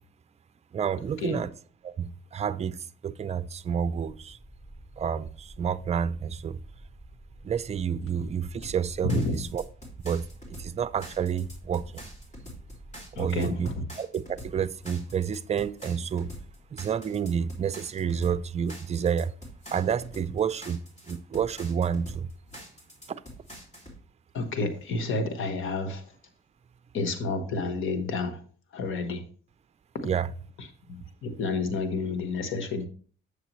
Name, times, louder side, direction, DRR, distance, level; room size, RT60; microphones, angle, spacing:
voice 1, 0.7-1.5 1.8-4.4 5.0-6.6 7.4-9.2 9.5-9.6 10.0-10.2 10.6-12.0 13.1-13.7 14.0-16.3 16.7-19.3 19.7-22.3 23.1-23.2 30.0-30.3, right 7 dB, 35° right, 0.5 m, -29 dB
sound 1, 3.7-13.8, right 1 dB, 5° left, 0.9 m, -49 dB
sound 2, 8.6-24.0, equal, 35° left, 2.9 m, -45 dB
voice 2, 9.0-9.4 13.1-13.8 24.3-26.2 26.9-28.4 28.7-29.2 30.0-30.1 30.6-32.9, left 3 dB, 80° left, 1.2 m, -30 dB
8.1 x 6.7 x 3.0 m
cardioid pair, 90°, 20 cm